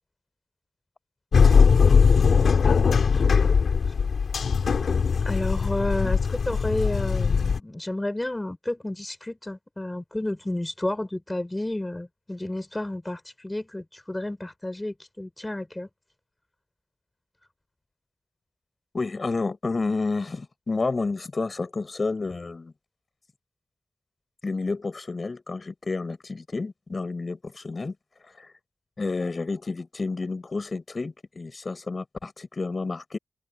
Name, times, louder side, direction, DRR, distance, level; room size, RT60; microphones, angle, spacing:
sound 1, 1.3-7.6, left 5 dB, 90° left, 3.0 m, -20 dB
voice 1, 5.2-15.9, left 1 dB, 15° left, 4.5 m, -31 dB
voice 2, 18.9-22.7 24.4-27.9 28.4-28.5 29.0-33.2, left 3 dB, 40° left, 6.4 m, -30 dB
open air
wide cardioid pair, 130°, 0 cm